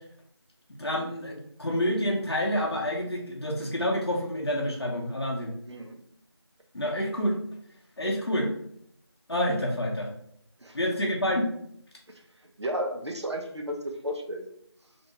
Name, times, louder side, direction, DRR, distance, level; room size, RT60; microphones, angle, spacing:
voice 1, 0.8-5.5 6.7-7.4 8.0-8.5 9.3-10.1 10.7-11.5, equal, 65° left, -2 dB, 0.7 m, -28 dB
voice 2, 12.6-14.4, equal, 85° right, 3 dB, 0.6 m, -33 dB
2.5 x 2.1 x 2.9 m, 0.70 s
figure-of-eight pair, 175°, 14 cm